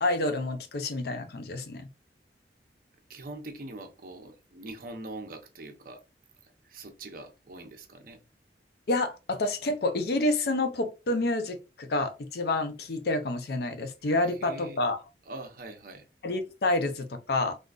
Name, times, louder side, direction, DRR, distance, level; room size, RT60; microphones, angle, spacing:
voice 1, 0.0-1.9 8.9-15.0 16.2-17.6, left 2 dB, 60° left, 0.5 m, -28 dB
voice 2, 3.1-6.0 6.4-8.2 14.4-14.8 15.3-16.1, right 2 dB, 50° right, 0.7 m, -43 dB
3.7 x 2.5 x 2.3 m
head